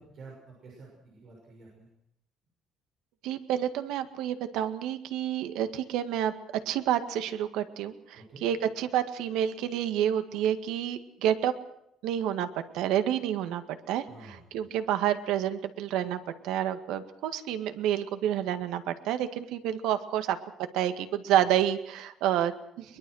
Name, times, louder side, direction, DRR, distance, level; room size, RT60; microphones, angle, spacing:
voice 1, 0.0-1.9 8.1-8.4 14.0-14.4, right 3 dB, 40° right, -1 dB, 6.3 m, -50 dB
voice 2, 3.2-6.3 6.7-11.5 12.0-12.5 12.7-20.4 20.7-23.0, right 10 dB, 80° right, 9 dB, 1.9 m, -29 dB
22.5 x 21.5 x 6.4 m, 0.77 s
cardioid pair, 175°, 0 cm